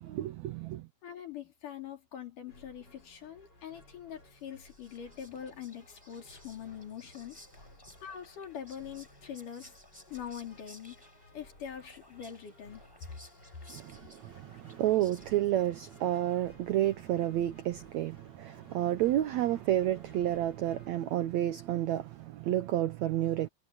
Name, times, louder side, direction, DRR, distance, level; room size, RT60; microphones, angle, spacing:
voice 1, 0.0-0.9 13.7-23.5, right 13 dB, 80° right, 1.6 m, -30 dB
voice 2, 1.0-7.4 8.0-9.7 10.1-11.0 11.3-12.8, left 9 dB, 60° left, 4.8 m, -43 dB
sound 1, 2.5-21.0, left 1 dB, 25° left, 8.3 m, -58 dB
Whispering, 4.4-16.3, left 1 dB, 5° left, 4.9 m, -58 dB
omnidirectional pair, 4.2 m